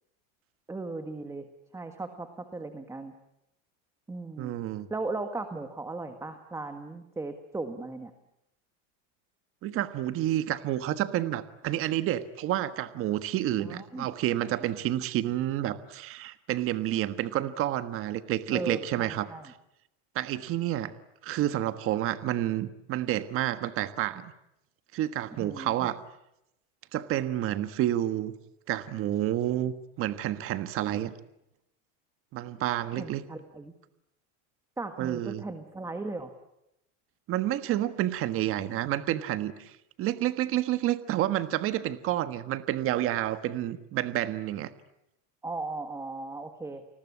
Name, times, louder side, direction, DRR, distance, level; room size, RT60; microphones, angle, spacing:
voice 1, 0.7-1.5 1.7-3.1 4.1-4.5 4.9-8.1 13.6-14.1 18.5-19.5 25.4-25.9 32.9-33.7 34.8-36.3 45.4-46.8, right 3 dB, 10° right, 7 dB, 1.5 m, -37 dB
voice 2, 4.4-4.9 9.6-19.3 20.1-20.9 21.2-24.3 24.9-26.0 26.9-28.3 28.7-31.1 32.3-33.2 35.0-35.4 37.3-44.7, right 13 dB, 35° right, 12 dB, 1.4 m, -29 dB
29.0 x 20.5 x 9.7 m, 0.85 s
supercardioid pair, 155°, 37 cm